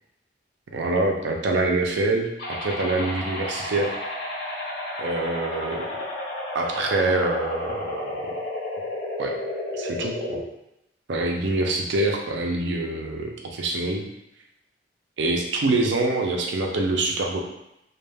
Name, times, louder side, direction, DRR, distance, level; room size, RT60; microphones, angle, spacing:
voice 1, 0.7-3.9 5.0-5.8 6.5-8.2 9.2-9.3 9.7-10.4 11.1-14.1 15.2-17.4, right 2 dB, 85° right, 1 dB, 0.5 m, -25 dB
sound 1, 2.4-10.4, left 1 dB, 65° left, 0.9 m, -32 dB
2.2 x 2.2 x 3.3 m, 0.86 s
head